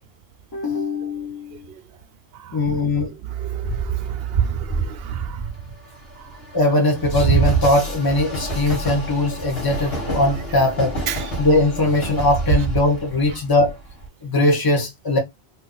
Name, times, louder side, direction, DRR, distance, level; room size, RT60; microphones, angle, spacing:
voice 1, 0.5-1.6 2.5-3.1 6.5-11.0 11.4-13.8 14.2-15.2, left 2 dB, 20° left, 1.0 m, -20 dB
voice 2, 3.2-5.5 11.1-11.2, right 11 dB, 75° right, 0.8 m, -30 dB
Train, 3.6-14.1, right 4 dB, 70° left, 1.7 m, -26 dB
2.8 x 2.7 x 3.8 m
omnidirectional pair, 1.0 m